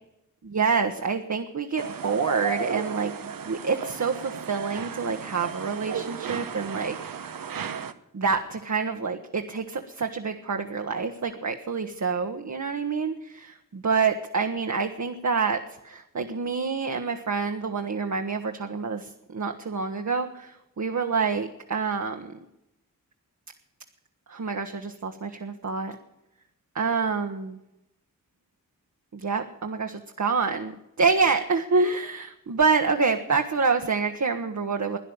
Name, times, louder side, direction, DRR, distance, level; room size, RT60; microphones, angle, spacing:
voice 1, 0.5-6.9 8.1-22.3 24.3-26.0 26.7-27.6 29.1-30.7 31.0-35.0, right 5 dB, 55° right, 4 dB, 1.2 m, -27 dB
sound 1, 1.8-7.9, right 7 dB, 80° right, 0.9 m, -34 dB
12.5 x 10.0 x 8.9 m, 0.88 s
cardioid pair, 50°, 34 cm